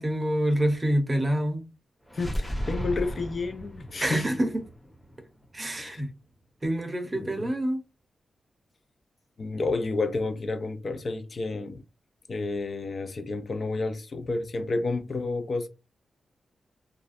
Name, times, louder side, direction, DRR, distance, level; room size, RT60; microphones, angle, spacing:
voice 1, 0.0-1.7 4.0-4.5 5.5-6.1 6.6-7.8, right 1 dB, 30° right, 0.6 m, -26 dB
voice 2, 2.1-4.3 5.8-6.0 7.1-7.5 9.4-11.8 12.3-15.7, left 3 dB, 55° left, 0.4 m, -30 dB
sound 1, 2.1-5.9, equal, 10° left, 1.0 m, -35 dB
2.4 x 2.2 x 2.5 m
cardioid pair, 55°, 0 cm